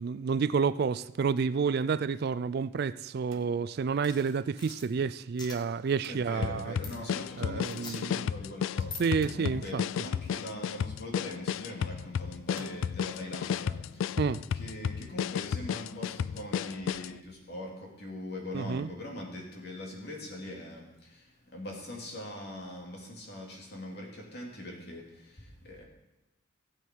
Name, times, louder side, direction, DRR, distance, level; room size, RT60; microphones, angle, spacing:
voice 1, 0.0-6.7 7.4-8.3 9.0-9.8 14.2-14.4 18.5-18.9, right 5 dB, 50° right, 0.3 m, -29 dB
sound 1, 3.3-4.1 6.0-6.8 9.2-10.1 12.6-12.9, right 3 dB, 85° right, 1.3 m, -51 dB
sound 2, 4.0-4.9 5.4-5.6 6.8-7.0 7.7-7.9 8.8-9.0, left 3 dB, 20° left, 1.2 m, -43 dB
voice 2, 6.1-14.2 14.5-25.8, left 1 dB, 55° left, 2.7 m, -42 dB
sound 3, 6.4-17.2, left 8 dB, 75° left, 0.3 m, -33 dB
16.5 x 8.2 x 4.6 m
head